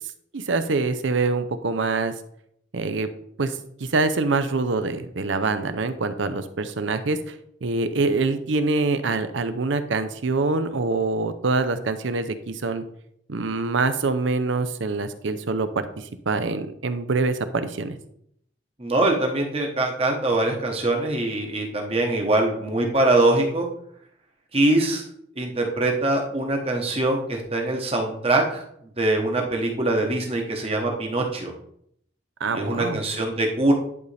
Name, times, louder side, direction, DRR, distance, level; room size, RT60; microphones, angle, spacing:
voice 1, 0.3-2.1 2.7-3.1 3.4-7.4 7.6-12.8 13.3-18.0 32.4-33.0, right 3 dB, 70° right, 11 dB, 0.6 m, -25 dB
voice 2, 18.8-23.7 24.5-25.1 25.4-28.6 29.0-31.5 32.5-33.7, right 2 dB, 30° right, 2 dB, 1.1 m, -23 dB
10.5 x 4.1 x 3.3 m, 0.71 s
head